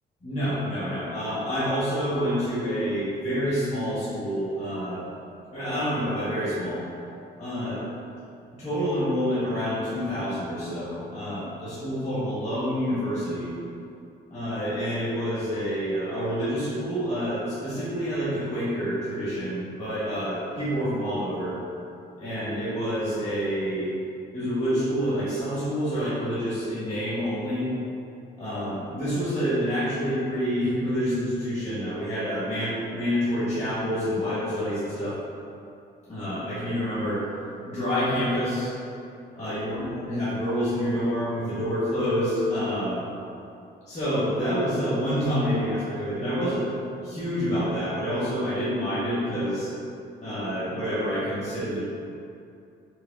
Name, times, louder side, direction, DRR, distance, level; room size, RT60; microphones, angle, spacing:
voice 1, 0.2-5.0 5.5-6.8 7.4-7.8 8.6-13.5 14.3-21.6 22.2-23.9 24.3-27.7 28.4-35.2 36.1-37.2 37.6-38.7 39.3-43.0 43.9-49.7 50.2-51.8, equal, 35° left, -12 dB, 1.3 m, -28 dB
4.7 x 2.4 x 2.4 m, 2.6 s
cardioid pair, 90°, 20 cm